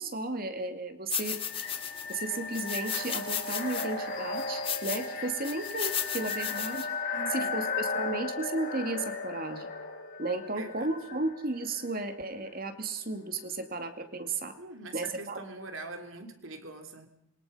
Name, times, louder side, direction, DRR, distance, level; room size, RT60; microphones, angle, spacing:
voice 1, 0.0-1.4 2.1-6.9 7.3-9.7 10.2-14.6 14.9-15.4, right 2 dB, 40° right, 7 dB, 2.3 m, -34 dB
sound 1, 1.1-2.2 2.5-3.9 4.4-5.1 5.4-6.8, left 9 dB, 25° left, 1.9 m, -34 dB
sound 2, 1.2-12.0, left 3 dB, 40° left, 3.2 m, -36 dB
voice 2, 7.1-7.6 10.6-10.9 14.6-17.1, right 2 dB, 65° right, 5 dB, 3.4 m, -43 dB
26.5 x 23.0 x 5.6 m, 0.72 s
head